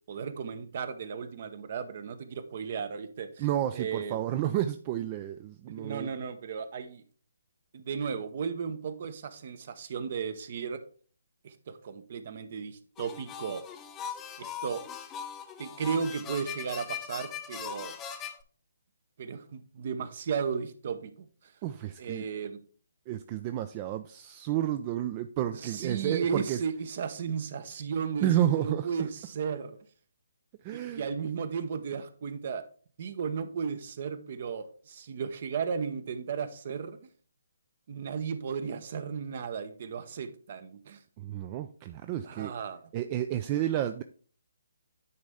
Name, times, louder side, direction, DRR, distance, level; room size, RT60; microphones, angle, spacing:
voice 1, 0.1-3.5 3.7-4.2 5.7-7.0 7.7-10.8 11.4-13.6 14.4-14.8 15.6-18.0 19.2-21.5 22.0-22.6 25.5-29.8 30.7-32.6 33.0-37.0 37.9-41.0 42.3-42.8, right 6 dB, 45° right, 0.8 m, -35 dB
voice 2, 3.4-6.1 21.6-22.3 23.1-26.6 28.2-28.9 30.6-31.0 41.2-42.5 42.9-44.0, right 12 dB, 30° right, 0.4 m, -31 dB
sound 1, 13.0-18.4, left 8 dB, 15° left, 0.6 m, -40 dB
9.5 x 4.1 x 3.6 m
figure-of-eight pair, 145°, 0 cm